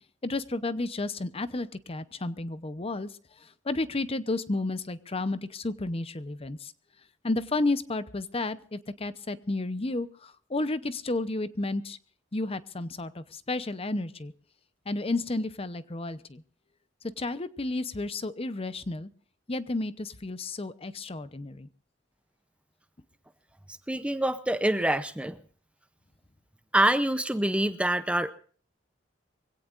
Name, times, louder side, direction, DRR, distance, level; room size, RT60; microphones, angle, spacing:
voice 1, 0.2-3.1 3.4-6.7 7.2-12.0 12.3-14.3 14.9-16.4 17.2-19.1 19.5-21.7, left 2 dB, 30° left, 13 dB, 0.8 m, -32 dB
voice 2, 23.9-25.4 26.7-28.3, right 1 dB, 5° right, 11 dB, 0.6 m, -25 dB
24.0 x 17.0 x 2.5 m, 0.43 s
head